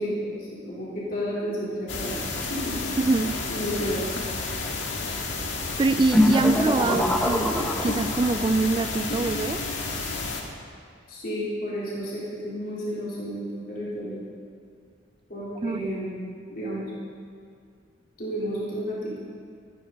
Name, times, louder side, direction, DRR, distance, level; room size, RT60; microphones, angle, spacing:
voice 1, 0.0-2.2 2.5-2.8 3.5-4.1 6.9-7.1 11.1-14.2 15.3-16.2 16.5-16.9 18.2-19.2, equal, 50° left, -8 dB, 4.2 m, -31 dB
sound 1, 1.9-10.4, left 3 dB, 90° left, 1.8 m, -31 dB
voice 2, 3.0-3.4 5.8-7.6 7.8-9.6 15.6-15.8, right 3 dB, 25° right, 11 dB, 0.3 m, -24 dB
sound 2, 6.1-8.5, left 1 dB, 5° left, 0.9 m, -23 dB
15.0 x 14.5 x 4.2 m, 2.2 s
head